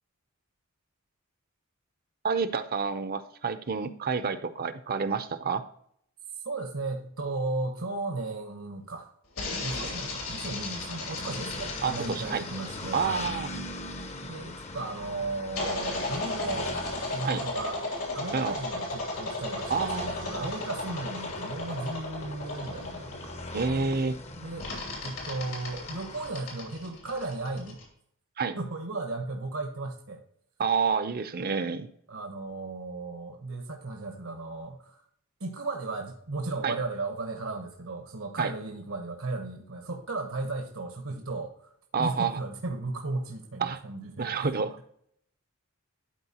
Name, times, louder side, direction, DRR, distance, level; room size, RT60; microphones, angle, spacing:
voice 1, 2.2-5.6 11.8-12.4 12.9-13.5 17.2-17.4 18.3-18.5 19.7-20.5 23.5-24.2 28.4-28.6 30.6-31.9 36.6-36.7 38.4-38.5 41.9-42.4 43.6-43.8 44.2-44.8, right 5 dB, 45° right, 11 dB, 0.6 m, -29 dB
voice 2, 6.4-9.1 9.5-13.3 14.3-16.7 17.1-17.8 18.1-23.4 24.4-27.8 28.6-30.2 32.1-35.0 35.4-44.6, right 3 dB, 75° right, 3 dB, 1.2 m, -35 dB
sound 1, 9.4-14.3 15.6-23.9 24.6-27.8, left 2 dB, 80° left, 2.7 m, -36 dB
sound 2, 9.7-26.3, left 2 dB, 30° left, 0.7 m, -41 dB
12.0 x 4.5 x 2.9 m, 0.67 s
head